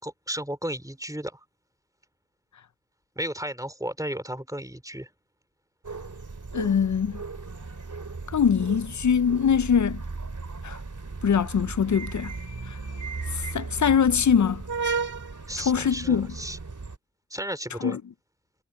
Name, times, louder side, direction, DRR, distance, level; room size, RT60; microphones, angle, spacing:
voice 1, 0.0-1.4 3.1-5.1 15.5-16.6 17.3-18.0, right 1 dB, 10° right, 3.4 m, -34 dB
sound 1, 5.8-17.0, right 4 dB, 90° right, 3.3 m, -35 dB
voice 2, 6.5-7.2 8.3-10.0 10.6-10.8 11.2-12.3 12.6-12.8 13.3-14.6 15.6-16.3 17.8-18.0, left 7 dB, 75° left, 0.5 m, -23 dB
wide cardioid pair, 55°, 29 cm